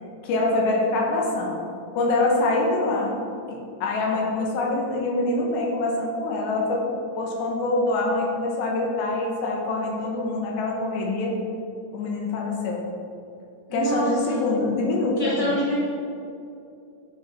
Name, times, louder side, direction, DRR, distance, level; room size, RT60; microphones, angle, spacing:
voice 1, 0.2-1.6 1.9-3.2 3.5-6.8 7.2-11.3 11.9-12.8 13.7-15.5, left 2 dB, 85° left, -1 dB, 3.4 m, -25 dB
voice 2, 13.7-14.4 15.2-15.8, right 1 dB, 75° right, -10 dB, 0.6 m, -26 dB
11.5 x 5.3 x 4.2 m, 2.6 s
omnidirectional pair, 4.8 m